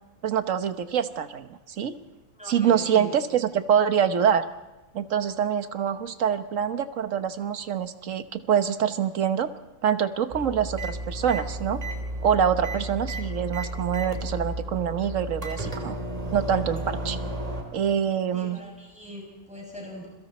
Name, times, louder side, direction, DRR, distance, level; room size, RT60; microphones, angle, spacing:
voice 1, 0.2-1.9 2.5-4.4 4.9-9.5 9.8-11.8 12.2-16.0 16.3-17.2 17.7-18.6, right 8 dB, 65° right, 9 dB, 1.4 m, -25 dB
voice 2, 2.3-3.1 18.3-20.1, left 1 dB, 5° right, -1 dB, 6.7 m, -42 dB
sound 1, 10.3-17.6, right 1 dB, 25° right, 3.3 m, -33 dB
29.5 x 22.5 x 4.2 m, 1.0 s
omnidirectional pair, 1.5 m